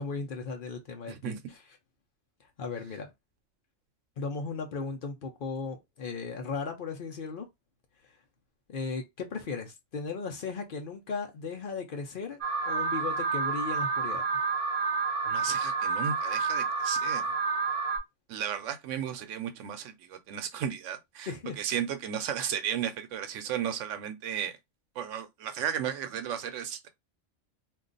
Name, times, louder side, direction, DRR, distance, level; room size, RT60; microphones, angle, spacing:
voice 1, 0.0-1.3 2.6-3.1 4.2-7.5 8.7-12.4 12.6-14.2 21.3-21.6, left 4 dB, 55° left, 0.7 m, -36 dB
voice 2, 1.1-1.4 15.2-17.3 18.3-24.5 25.0-26.9, right 9 dB, 90° right, 1.0 m, -34 dB
Alarm, 12.4-18.0, right 4 dB, 35° right, 0.7 m, -29 dB
2.5 x 2.3 x 3.8 m
omnidirectional pair, 1.3 m